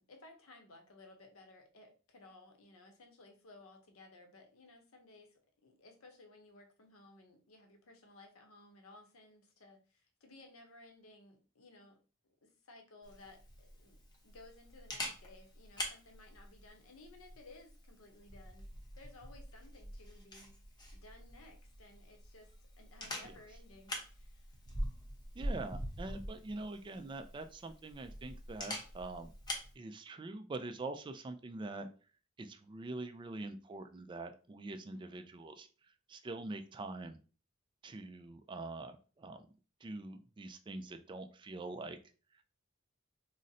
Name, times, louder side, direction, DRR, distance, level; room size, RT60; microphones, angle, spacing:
voice 1, 0.0-12.0 12.2-14.0 14.2-18.7 18.9-20.5 20.9-24.6 34.9-35.3, left 2 dB, 75° left, 4 dB, 0.7 m, -58 dB
Camera, 13.0-29.7, equal, 20° left, 0.7 m, -45 dB
voice 2, 25.4-29.3 29.8-31.9 32.4-35.7 36.1-37.2 37.8-39.4 39.8-42.0, right 2 dB, 25° right, 8 dB, 0.3 m, -44 dB
3.9 x 2.0 x 2.6 m, 0.37 s
head